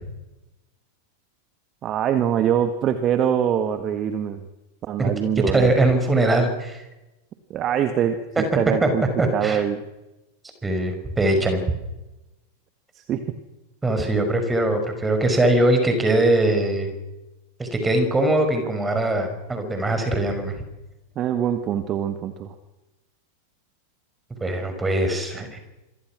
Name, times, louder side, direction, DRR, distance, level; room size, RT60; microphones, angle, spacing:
voice 1, 1.8-4.4 4.8-5.7 7.5-9.0 9.3-9.8 12.9-13.4 21.2-22.5, right 9 dB, 30° right, 9 dB, 1.8 m, -24 dB
voice 2, 5.5-6.8 8.8-8.9 9.2-9.6 10.6-11.6 13.8-16.9 17.6-20.5 24.4-25.6, right 1 dB, 10° right, 6 dB, 5.9 m, -21 dB
27.0 x 24.0 x 6.2 m, 1.0 s
figure-of-eight pair, 90°, 0 cm